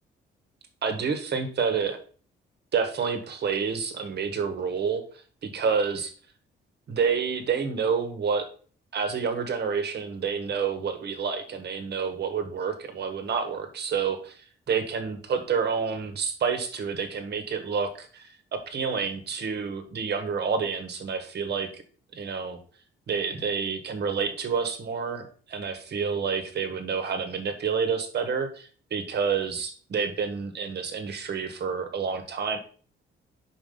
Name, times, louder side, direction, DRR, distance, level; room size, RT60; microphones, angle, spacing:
voice 1, 0.8-2.0 2.7-5.0 5.4-6.1 6.9-8.5 8.9-21.8 22.1-22.6 23.1-32.6, right 6 dB, 55° right, 7 dB, 1.5 m, -29 dB
5.1 x 5.0 x 5.5 m, 0.42 s
cardioid pair, 90°, 20 cm